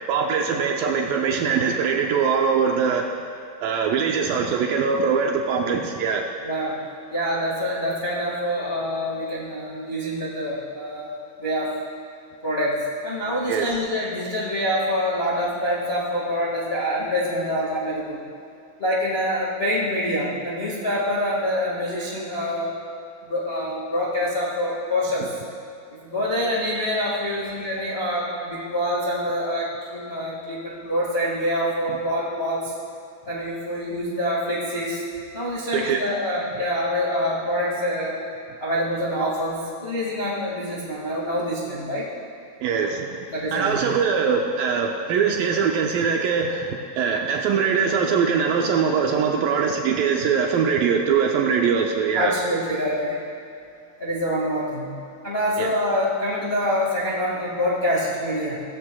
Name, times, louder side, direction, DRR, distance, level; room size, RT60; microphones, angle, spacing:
voice 1, 0.1-3.1 3.6-6.2 13.5-13.7 35.7-36.0 42.6-43.1 43.5-46.7 47.0-52.3 55.6-55.7, right 6 dB, 80° right, 2 dB, 2.1 m, -22 dB
voice 2, 6.4-6.8 7.1-11.7 12.4-18.2 18.8-22.7 23.2-25.3 26.0-32.7 33.3-35.0 35.3-38.2 38.6-42.1 43.3-43.8 52.1-53.2 54.0-54.9 55.2-58.6, equal, 70° left, -6 dB, 0.5 m, -26 dB
17.0 x 14.5 x 2.3 m, 2.5 s
omnidirectional pair, 4.6 m